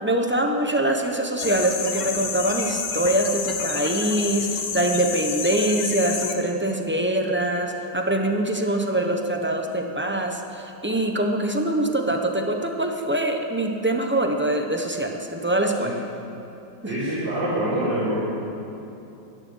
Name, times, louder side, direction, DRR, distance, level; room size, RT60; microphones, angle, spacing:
voice 1, 0.0-15.9 16.8-16.9, right 1 dB, 10° right, 3 dB, 0.5 m, -24 dB
sound 1, 1.4-6.3, left 5 dB, 50° left, 1.4 m, -29 dB
voice 2, 16.8-18.2, right 1 dB, 75° right, -13 dB, 5.1 m, -25 dB
12.5 x 11.5 x 9.5 m, 2.9 s
omnidirectional pair, 2.1 m